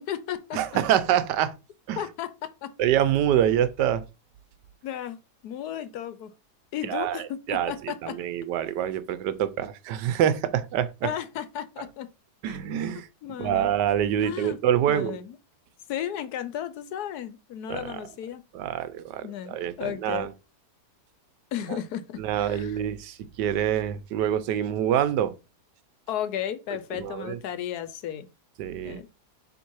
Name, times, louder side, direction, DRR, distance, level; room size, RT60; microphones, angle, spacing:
voice 1, 0.0-0.8 2.0-2.3 2.6-2.7 4.8-5.2 5.4-6.3 6.7-8.2 11.0-12.1 12.4-12.6 13.2-13.7 14.2-14.6 14.9-15.4 15.9-18.4 19.2-20.3 21.5-22.8 26.1-28.3 28.8-29.1, left 10 dB, 75° left, 1.2 m, -34 dB
voice 2, 0.5-1.5 1.9-2.0 2.8-4.0 6.9-7.2 7.5-11.1 12.4-15.2 17.7-18.1 18.5-20.3 21.7-21.8 22.2-25.3 26.9-27.4 28.6-29.0, right 10 dB, 90° right, 1.3 m, -26 dB
7.2 x 3.2 x 4.6 m
omnidirectional pair, 1.8 m